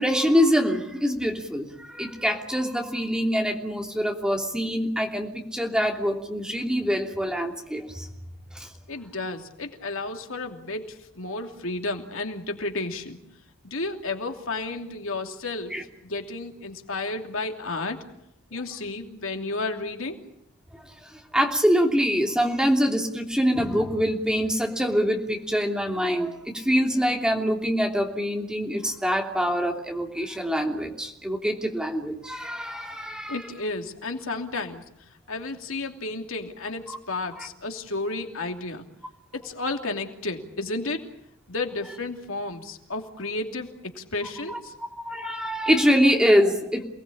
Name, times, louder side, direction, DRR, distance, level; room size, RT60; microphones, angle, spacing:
voice 1, 0.0-8.1 8.5-8.7 15.7-15.8 20.7-20.8 21.1-33.4 37.4-37.5 44.5-46.8, equal, 5° right, 2 dB, 3.0 m, -24 dB
voice 2, 8.9-13.2 13.6-18.0 18.5-20.2 33.3-34.8 35.3-38.9 39.3-41.0 41.5-44.7, left 2 dB, 70° left, 4 dB, 2.8 m, -32 dB
28.5 x 19.5 x 8.6 m, 0.78 s
head